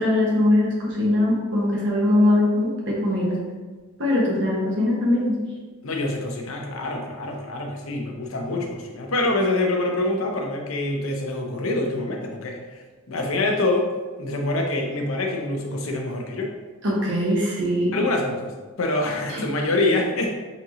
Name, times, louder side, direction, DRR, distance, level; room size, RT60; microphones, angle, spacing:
voice 1, 0.0-3.4 4.0-5.4 16.8-18.0 19.3-19.4, left 1 dB, 60° right, -4 dB, 1.2 m, -21 dB
voice 2, 5.8-13.9 14.2-16.6 17.9-18.5 18.8-20.4, left 2 dB, 70° left, 2 dB, 0.7 m, -25 dB
4.1 x 3.7 x 3.0 m, 1.3 s
head